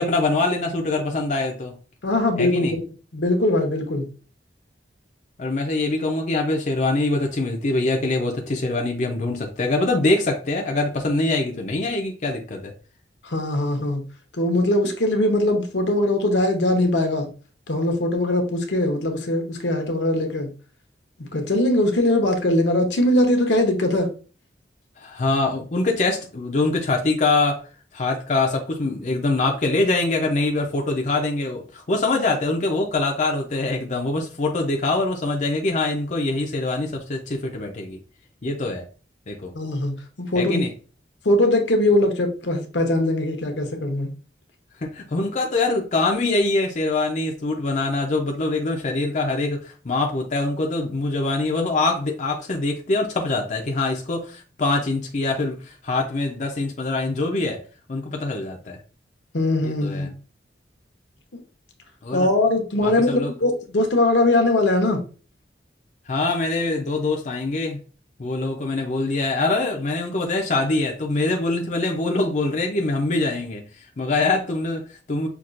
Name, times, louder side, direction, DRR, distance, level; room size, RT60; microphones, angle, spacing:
voice 1, 0.0-1.7 2.4-2.7 5.4-12.7 25.0-27.7 27.9-38.0 38.4-38.8 39.3-39.5 40.4-40.7 44.8-57.6 57.9-58.8 59.6-60.1 62.0-62.3 62.8-63.3 66.1-67.8 68.2-75.3, left 2 dB, 45° left, 0.5 m, -24 dB
voice 2, 2.0-2.8 3.1-4.0 13.2-14.0 14.4-17.3 17.7-20.5 21.3-24.1 39.5-39.9 40.2-40.6 41.2-44.1 59.3-60.1 61.3-61.4 62.1-65.0, left 1 dB, 75° left, 0.9 m, -21 dB
5.8 x 2.3 x 2.5 m
head